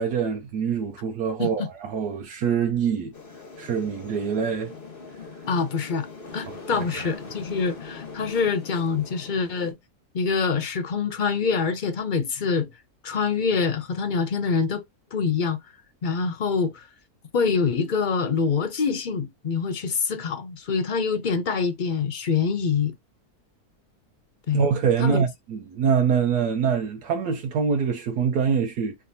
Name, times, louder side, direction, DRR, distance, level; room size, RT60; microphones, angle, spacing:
voice 1, 0.0-3.1 3.6-4.7 6.7-7.1 24.5-29.0, right 6 dB, 80° right, 1.3 m, -25 dB
sound 1, 3.1-9.7, left 4 dB, 40° left, 1.3 m, -41 dB
voice 2, 5.5-6.1 6.3-9.8 10.1-12.7 13.0-14.8 15.1-15.6 16.0-16.9 17.3-22.9 24.5-24.6 25.0-25.2, left 5 dB, 65° left, 0.4 m, -25 dB
4.7 x 3.4 x 2.8 m
omnidirectional pair, 1.7 m